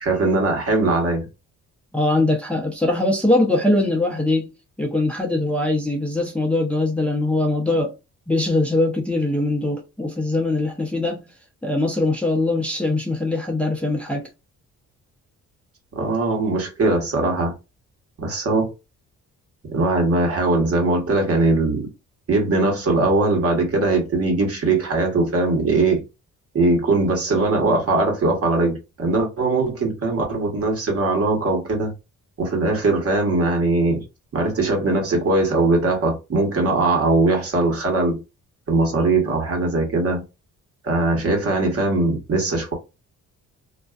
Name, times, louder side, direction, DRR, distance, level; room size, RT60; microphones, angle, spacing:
voice 1, 0.0-1.3 15.9-17.5 18.2-18.7 19.7-21.9 22.3-26.0 26.5-31.9 32.4-34.0 34.3-38.2 38.7-40.2 40.8-42.7, right 2 dB, 50° right, 1.2 m, -20 dB
voice 2, 1.9-4.5 4.8-7.9 8.3-11.3 11.6-14.3, left 2 dB, 5° left, 0.6 m, -22 dB
2.5 x 2.2 x 2.3 m
cardioid pair, 90°, 30 cm